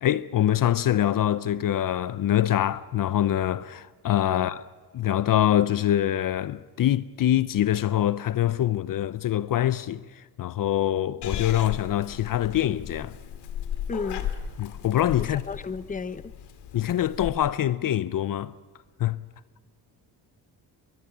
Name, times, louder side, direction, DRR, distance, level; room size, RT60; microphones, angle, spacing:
voice 1, 0.0-4.7 4.9-13.2 14.6-15.4 16.7-18.5 19.0-19.2, left 12 dB, 55° left, 0.7 m, -24 dB
Purr / Meow, 11.2-17.3, left 9 dB, 85° left, 2.3 m, -36 dB
voice 2, 13.9-14.3 15.5-16.2, left 4 dB, 20° left, 0.9 m, -33 dB
22.0 x 22.0 x 8.5 m
cardioid pair, 115°, 40 cm